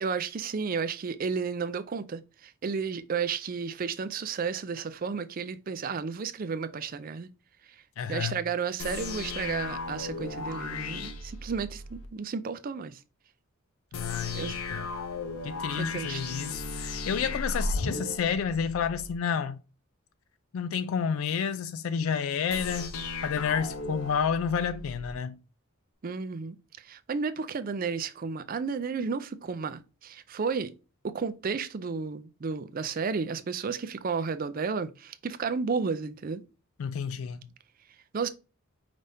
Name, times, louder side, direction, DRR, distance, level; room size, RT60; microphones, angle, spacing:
voice 1, 0.0-7.3 7.7-7.8 8.1-13.0 14.3-14.6 15.7-16.4 26.0-30.7 31.0-36.4 38.1-38.3, right 5 dB, 40° right, 0.4 m, -32 dB
voice 2, 8.0-8.4 13.9-14.9 15.4-19.6 20.5-22.9 23.2-25.4 36.8-37.4, left 7 dB, 70° left, 0.3 m, -30 dB
sound 1, 8.8-12.1 13.9-19.1 22.5-25.1, left 3 dB, 85° left, 0.7 m, -36 dB
5.0 x 3.4 x 2.7 m
head